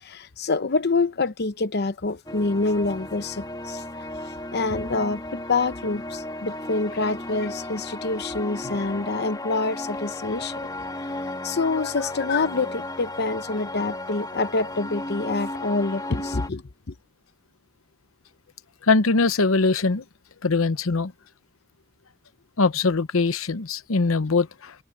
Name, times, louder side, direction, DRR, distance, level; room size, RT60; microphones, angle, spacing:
voice 1, 0.0-3.8 4.5-10.7 11.4-16.9, left 3 dB, 55° left, 0.8 m, -26 dB
sound 1, 2.3-16.5, left 1 dB, 20° left, 1.9 m, -34 dB
voice 2, 18.8-20.0 20.4-21.1 22.6-24.7, left 3 dB, 85° left, 0.9 m, -22 dB
head